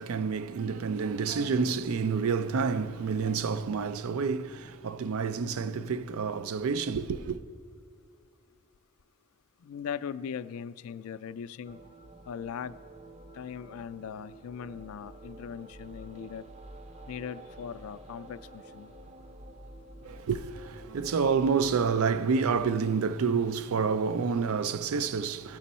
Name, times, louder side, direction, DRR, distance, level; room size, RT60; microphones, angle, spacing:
voice 1, 0.0-7.4 20.0-25.6, right 5 dB, 80° right, 0.4 m, -29 dB
voice 2, 9.6-11.8 12.3-12.7 13.4-16.4 17.1-18.9, left 7 dB, 80° left, 0.3 m, -39 dB
sound 1, 11.6-22.6, right 1 dB, 30° right, 0.6 m, -49 dB
17.0 x 6.1 x 4.2 m
head